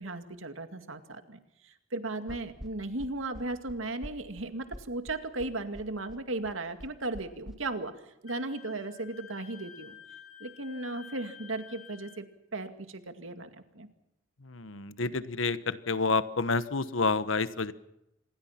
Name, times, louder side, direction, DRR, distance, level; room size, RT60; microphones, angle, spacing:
voice 1, 0.0-10.0 10.4-12.2 12.5-13.9, right 2 dB, 80° right, 8 dB, 2.2 m, -36 dB
sound 1, 2.3-7.6, equal, ahead, 1.2 m, -46 dB
Wind instrument woodwind instrument, 8.3-12.2, left 8 dB, 40° left, 2.9 m, -51 dB
voice 2, 14.4-17.7, left 4 dB, 75° left, 14 dB, 1.2 m, -29 dB
27.0 x 21.0 x 5.9 m, 0.86 s
head